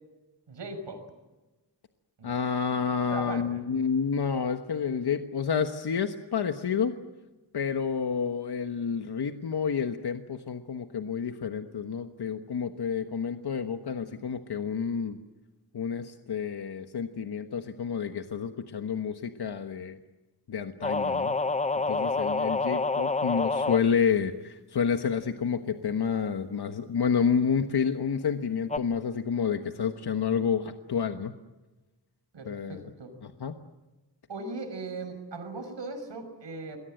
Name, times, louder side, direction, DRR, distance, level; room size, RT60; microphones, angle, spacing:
voice 1, 0.5-1.0 2.2-2.3 3.1-3.6 32.3-33.2 34.3-36.8, right 3 dB, 80° right, 7 dB, 5.8 m, -38 dB
voice 2, 2.2-6.9 7.5-15.2 15.7-20.0 20.5-21.4 21.9-31.3 32.4-32.8 33.2-33.6, left 6 dB, 65° left, 7 dB, 1.3 m, -29 dB
sound 1, 20.8-23.8 28.7-28.8, left 3 dB, 15° left, 0.8 m, -27 dB
28.0 x 22.0 x 7.8 m, 1.1 s
wide cardioid pair, 130°, 42 cm